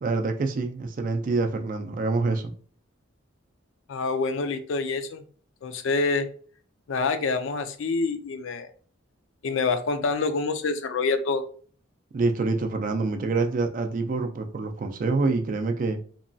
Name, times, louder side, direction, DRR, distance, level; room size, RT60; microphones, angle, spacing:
voice 1, 0.0-2.5 12.1-16.0, right 3 dB, 40° right, 0.3 m, -26 dB
voice 2, 3.9-5.2 5.6-6.3 6.9-8.7 9.4-11.4, left 4 dB, 65° left, 0.4 m, -26 dB
2.9 x 2.2 x 2.6 m
head